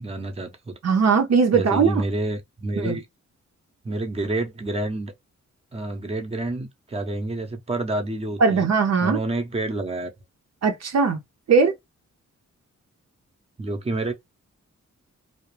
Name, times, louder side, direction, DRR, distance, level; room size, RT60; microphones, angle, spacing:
voice 1, 0.0-0.7 1.5-3.1 3.8-5.1 5.7-8.7 9.0-10.1 13.6-14.1, right 2 dB, 20° right, 0.7 m, -28 dB
voice 2, 0.8-2.0 2.8-3.0 8.4-9.2 10.6-11.2 11.5-11.7, right 5 dB, 60° right, 0.6 m, -19 dB
2.3 x 2.1 x 3.1 m
cardioid pair, 75°, 30 cm